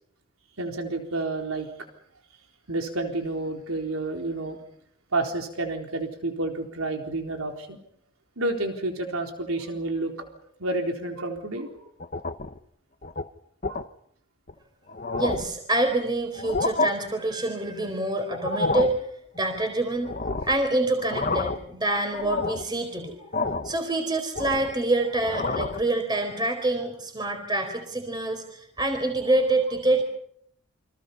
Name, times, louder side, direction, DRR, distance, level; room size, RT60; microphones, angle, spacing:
voice 1, 0.6-1.7 2.7-4.6 5.1-7.8 8.4-10.1 10.4-11.9 13.7-13.8 15.1-15.2, right 2 dB, 85° right, 3 dB, 4.0 m, -30 dB
sound 1, 12.0-12.6 13.0-13.2 13.6-13.9 14.5-14.6 14.9-15.6 16.3-16.9 18.3-19.0 20.1-20.6 21.0-21.7 22.1-22.7 23.3-23.8 24.1-24.8 25.2-25.8, left 3 dB, 40° left, 1.1 m, -29 dB
voice 2, 15.2-19.1 19.3-20.1 20.5-23.3 23.6-30.0, right 2 dB, 20° right, 5 dB, 4.3 m, -26 dB
29.5 x 25.5 x 5.5 m, 0.69 s
head